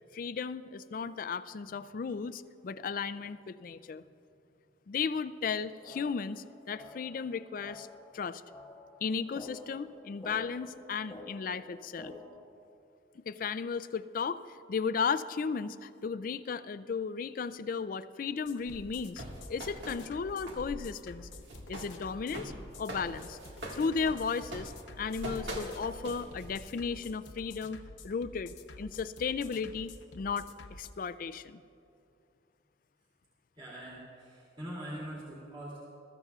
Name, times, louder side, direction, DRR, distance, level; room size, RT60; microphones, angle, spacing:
voice 1, 0.1-4.0 4.9-7.9 8.1-8.4 9.0-12.1 13.2-14.4 14.7-19.2 19.5-21.3 21.7-22.5 22.8-23.4 23.7-24.7 25.0-30.5 30.8-31.6, left 5 dB, 50° left, 13 dB, 0.3 m, -35 dB
sound 1, 5.4-12.4, left 2 dB, 10° left, 1.3 m, -50 dB
sound 2, 18.4-30.9, left 2 dB, 85° left, 0.8 m, -50 dB
sound 3, 18.7-20.8 21.1-26.8, right 1 dB, 75° right, 1.8 m, -43 dB
voice 2, 33.6-35.8, right 1 dB, 30° right, -8 dB, 2.6 m, -43 dB
21.5 x 14.0 x 2.4 m, 2.6 s
head